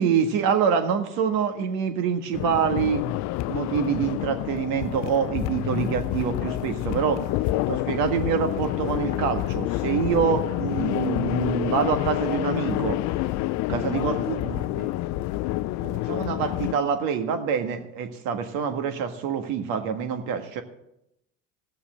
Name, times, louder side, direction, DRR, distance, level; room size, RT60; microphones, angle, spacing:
voice 1, 0.0-3.1 3.5-7.2 7.7-13.0 13.7-14.9 15.8-20.6, right 7 dB, 65° right, 6 dB, 1.8 m, -26 dB
sound 1, 2.3-16.7, left 16 dB, 50° left, 0.5 m, -28 dB
15.5 x 7.0 x 6.4 m, 0.82 s
hypercardioid pair, 85°, 37 cm